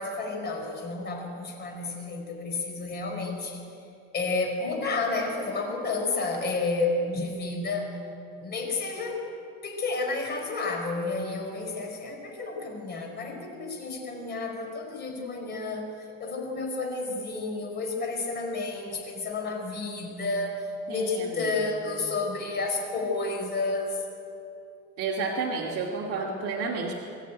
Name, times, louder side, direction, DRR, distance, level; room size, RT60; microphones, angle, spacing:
voice 1, 0.0-3.6 4.1-8.0 8.4-9.2 9.6-24.0, left 3 dB, 35° left, 1 dB, 4.7 m, -31 dB
voice 2, 20.9-21.5 25.0-26.9, right 4 dB, 50° right, -3 dB, 2.4 m, -31 dB
24.0 x 14.0 x 9.2 m, 2.6 s
cardioid pair, 165°, 30 cm